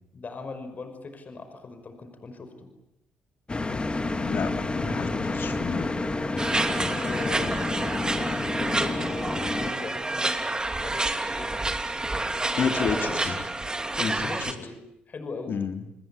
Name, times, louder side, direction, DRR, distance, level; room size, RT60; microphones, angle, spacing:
voice 1, 0.1-2.7 6.5-8.1 8.6-9.2 9.5-10.5 10.8-11.5 12.5-13.2 13.9-14.8 15.1-15.6, left 3 dB, 45° left, 8 dB, 5.5 m, -39 dB
sound 1, 3.5-9.7, left 2 dB, 25° left, 2.8 m, -29 dB
voice 2, 4.2-5.9 12.6-13.5 14.0-14.5 15.5-15.8, left 6 dB, 60° left, 6 dB, 3.2 m, -30 dB
sound 2, 6.4-14.5, right 2 dB, 20° right, 3.1 m, -29 dB
29.5 x 21.0 x 8.5 m, 0.82 s
supercardioid pair, 55°, 4 cm